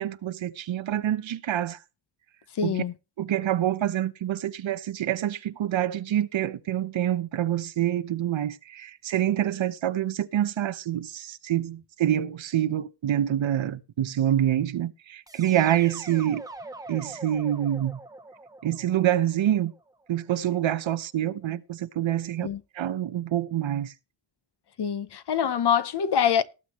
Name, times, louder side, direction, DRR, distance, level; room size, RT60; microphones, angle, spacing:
voice 1, 0.0-1.8 2.6-2.8 3.2-16.4 16.9-18.0 18.6-19.7 20.1-22.5 22.7-23.9, right 11 dB, 90° right, 0.9 m, -26 dB
voice 2, 2.5-2.9 22.4-22.6 24.8-26.4, left 8 dB, 60° left, 0.9 m, -25 dB
sound 1, 15.3-20.2, right 2 dB, 10° right, 0.9 m, -44 dB
18.5 x 7.8 x 3.0 m
wide cardioid pair, 135°, 45 cm